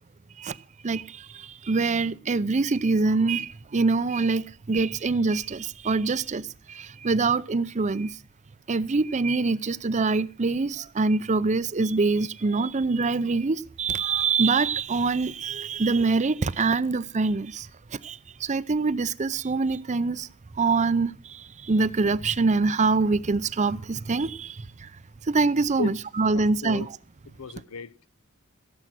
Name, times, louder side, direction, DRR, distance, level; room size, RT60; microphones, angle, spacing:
voice 1, 0.8-8.2 8.7-20.3 20.6-24.9 25.2-26.9, right 4 dB, 35° right, 0.5 m, -25 dB
voice 2, 26.3-26.9 27.3-28.1, left 5 dB, 85° left, 0.7 m, -35 dB
16.5 x 7.9 x 6.0 m
head